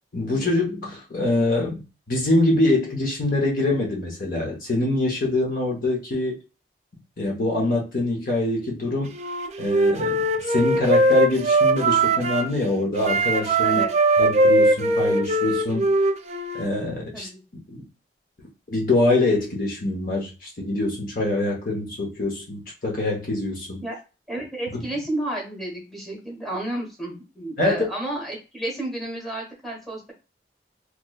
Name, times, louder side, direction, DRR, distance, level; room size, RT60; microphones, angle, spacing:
voice 1, 0.1-6.4 7.2-9.1 9.6-10.2 10.5-13.8 14.2-15.9 16.5-17.3 17.7-17.8 18.7-23.8 27.6-27.8, left 2 dB, 50° left, -1 dB, 0.9 m, -24 dB
Wind instrument woodwind instrument, 9.1-12.5 13.0-16.7, right 2 dB, 40° right, 0.3 m, -20 dB
voice 2, 13.6-13.9 17.1-17.4 23.8-24.0 24.3-30.1, right 1 dB, ahead, -3 dB, 1.0 m, -31 dB
3.1 x 3.0 x 2.2 m, 0.30 s
head